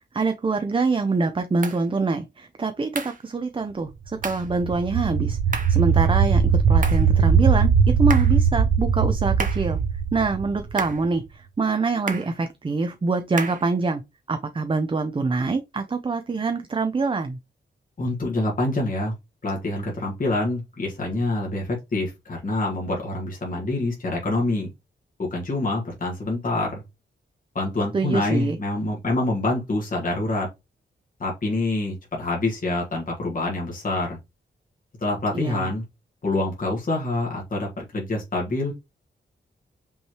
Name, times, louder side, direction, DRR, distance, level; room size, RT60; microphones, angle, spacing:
voice 1, 0.1-3.9 4.2-6.4 6.7-7.7 8.0-9.8 10.1-11.2 11.6-14.0 14.3-17.4 27.9-28.6 35.3-35.7, right 3 dB, 25° right, 0.5 m, -25 dB
sound 1, 1.6-1.8 2.9-3.2 4.2-4.5 5.5-5.8 6.8-7.1 8.1-8.4 9.4-9.7 10.8-11.1 12.1-12.4 13.4-13.7, right 4 dB, 45° right, 0.9 m, -32 dB
sound 2, 4.2-11.1, right 6 dB, 75° right, 0.7 m, -20 dB
voice 2, 18.0-19.1 19.4-24.7 25.2-26.8 27.5-30.5 31.2-34.2 35.0-35.8 36.2-38.7, left 2 dB, 45° left, 1.6 m, -26 dB
5.4 x 3.1 x 2.9 m
wide cardioid pair, 105°, 19 cm